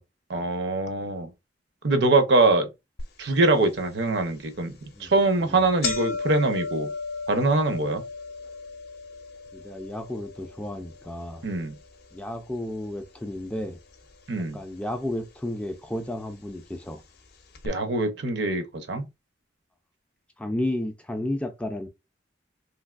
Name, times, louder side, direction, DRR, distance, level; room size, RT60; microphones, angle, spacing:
voice 1, 0.3-1.3 1.8-2.7 3.2-6.9 7.3-8.0 11.4-11.8 14.3-14.6 17.6-19.1, right 2 dB, 65° right, 0.6 m, -23 dB
sound 1, 3.0-3.1 3.6-3.7 4.6-4.8 5.1-5.2 5.4-13.7 13.9-14.7 15.5-15.6 16.5-16.6 16.9-17.0 17.5-17.7, left 4 dB, 55° left, 0.6 m, -36 dB
voice 2, 9.5-11.4 12.1-13.8 14.5-17.0 20.4-21.9, left 1 dB, 5° left, 0.3 m, -32 dB
3.2 x 2.7 x 2.3 m
head